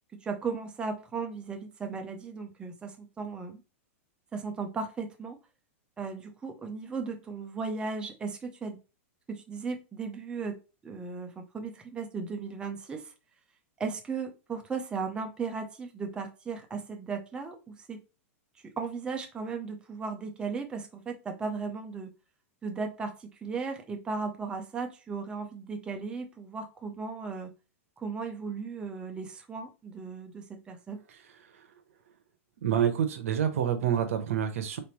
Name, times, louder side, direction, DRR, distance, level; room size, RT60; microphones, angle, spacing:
voice 1, 0.2-3.6 4.3-5.4 6.0-8.8 9.3-10.6 10.8-13.1 13.8-18.0 18.8-22.1 22.6-27.5 28.0-31.0, right 4 dB, 10° right, 0.6 m, -36 dB
voice 2, 32.6-34.8, right 9 dB, 75° right, 0.9 m, -27 dB
3.8 x 3.4 x 3.0 m
supercardioid pair, 145°, 8 cm